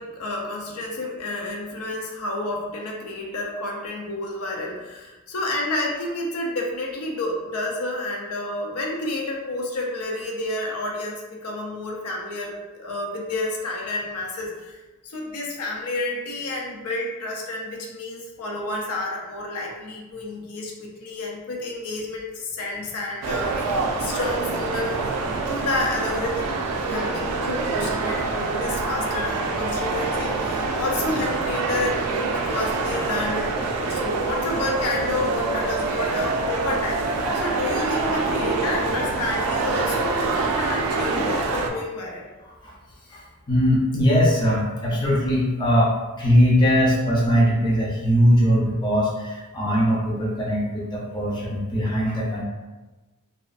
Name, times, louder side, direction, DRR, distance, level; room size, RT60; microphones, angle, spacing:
voice 1, 0.0-25.0 25.5-33.6 33.9-42.3, left 2 dB, 75° left, -1 dB, 0.5 m, -30 dB
sound 1, 23.2-41.7, right 3 dB, 90° right, 0.3 m, -26 dB
sound 2, 33.3-40.3, right 1 dB, 35° right, 0.7 m, -33 dB
voice 2, 43.5-52.4, equal, 20° left, -5 dB, 0.5 m, -20 dB
2.3 x 2.3 x 2.4 m, 1.2 s
head